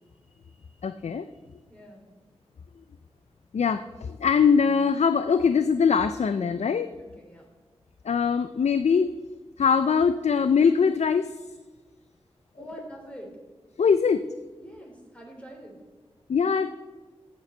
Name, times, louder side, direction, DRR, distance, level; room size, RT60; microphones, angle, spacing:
voice 1, 0.8-1.3 3.5-6.9 8.0-9.1 9.6-11.4 13.8-14.2 16.3-16.7, left 6 dB, 90° left, 11 dB, 0.4 m, -22 dB
voice 2, 1.7-2.1 7.0-7.5 12.6-13.4 14.6-15.8, equal, 10° left, 0 dB, 3.4 m, -44 dB
13.0 x 8.8 x 4.4 m, 1.3 s
wide cardioid pair, 65°, 11 cm